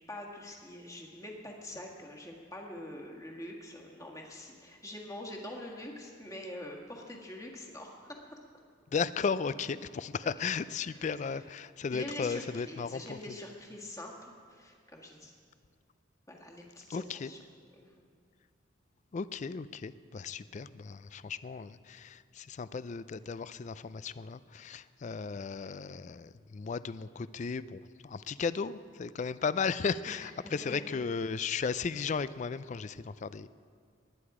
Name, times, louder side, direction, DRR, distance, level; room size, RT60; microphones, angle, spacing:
voice 1, 0.1-8.2 10.9-11.5 11.9-15.3 16.3-17.4 17.8-17.9 30.1-31.1, left 1 dB, 20° left, 0 dB, 1.7 m, -45 dB
voice 2, 8.9-13.2 16.9-17.3 19.1-33.5, left 5 dB, 40° left, 16 dB, 0.3 m, -35 dB
20.0 x 10.0 x 4.9 m, 2.2 s
head